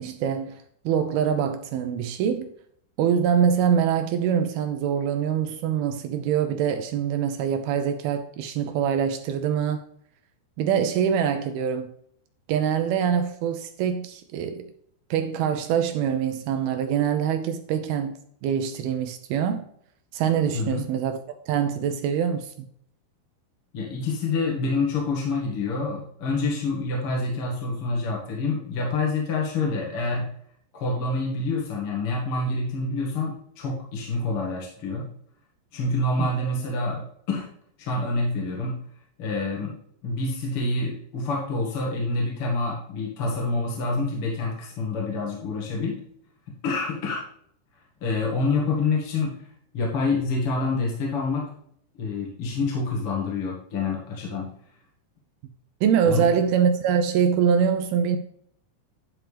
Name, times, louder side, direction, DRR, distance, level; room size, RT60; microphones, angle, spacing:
voice 1, 0.0-2.5 3.0-9.8 10.6-11.9 12.5-14.7 15.1-19.6 20.1-21.2 21.5-22.5 36.2-36.3 55.8-58.2, right 8 dB, 80° right, 2.3 m, -24 dB
voice 2, 23.7-30.3 30.7-35.1 35.7-37.5 37.8-38.8 39.2-39.7 40.0-46.0 46.6-47.3 48.0-49.3 49.7-51.5 51.9-54.5 56.0-56.2, left 3 dB, 45° left, 2.0 m, -27 dB
10.5 x 6.0 x 3.4 m
omnidirectional pair, 5.1 m